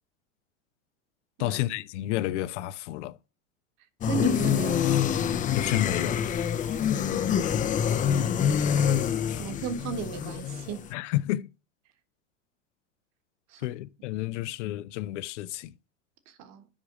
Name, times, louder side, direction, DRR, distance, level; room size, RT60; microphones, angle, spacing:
voice 1, 1.4-3.2 5.5-6.2 9.3-9.4 10.9-11.5 13.6-15.7, left 15 dB, 70° left, 0.6 m, -30 dB
sound 1, 4.0-10.9, left 8 dB, 20° left, 0.5 m, -26 dB
voice 2, 4.1-5.2 7.1-7.5 8.1-8.5 9.4-10.9 13.5-13.7 16.3-16.7, right 6 dB, 45° right, 1.5 m, -36 dB
7.4 x 5.0 x 6.0 m
hypercardioid pair, 115°, 37 cm